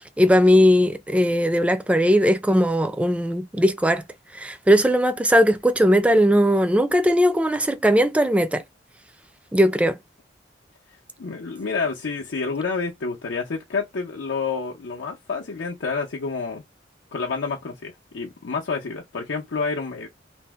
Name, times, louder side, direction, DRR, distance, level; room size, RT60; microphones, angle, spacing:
voice 1, 0.0-4.0 4.3-8.6 9.5-10.0, equal, 5° right, 0.3 m, -19 dB
voice 2, 11.2-16.6 17.1-20.1, left 4 dB, 85° left, 0.6 m, -29 dB
2.6 x 2.0 x 3.4 m
head